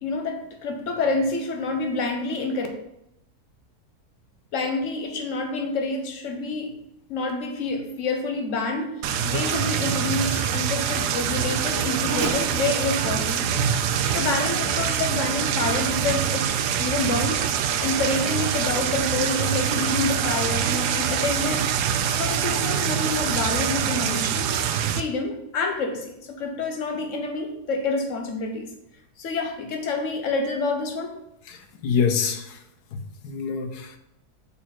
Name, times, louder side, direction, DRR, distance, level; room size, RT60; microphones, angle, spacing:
voice 1, 0.0-2.7 4.5-6.7 7.1-8.9 9.2-13.6 13.9-16.5 16.8-17.5 17.8-21.6 22.1-24.5 24.9-28.7 29.2-31.1, left 3 dB, 55° left, 4 dB, 1.3 m, -28 dB
Race car auto racing / Accelerating revving vroom, 7.9-15.9 16.5-16.6 17.2-21.9, right 3 dB, 45° right, 1.4 m, -40 dB
sound 1, 9.0-25.0, right 8 dB, 90° right, 1.2 m, -25 dB
voice 2, 31.5-32.6 32.9-34.0, left 6 dB, 85° left, 7 dB, 1.4 m, -26 dB
7.1 x 4.3 x 4.4 m, 0.82 s
omnidirectional pair, 1.7 m